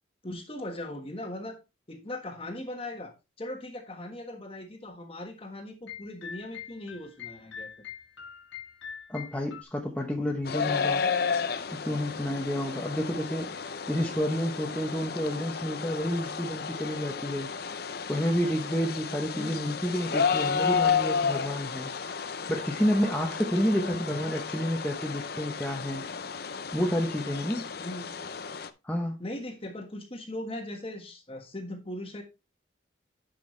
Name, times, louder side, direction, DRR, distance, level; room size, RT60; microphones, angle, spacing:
voice 1, 0.2-1.6 1.9-7.7 19.3-19.6 23.7-24.0 27.8-28.0 29.2-32.2, left 1 dB, 30° left, 1.4 m, -39 dB
sound 1, 5.9-9.6, left 8 dB, 80° left, 1.4 m, -43 dB
voice 2, 9.1-11.0 11.7-13.5 13.9-17.5 18.1-21.9 22.5-26.0 26.7-27.7 28.8-29.2, equal, 5° left, 0.9 m, -30 dB
sound 2, 10.4-28.7, left 6 dB, 55° left, 0.6 m, -32 dB
10.5 x 5.6 x 3.2 m
head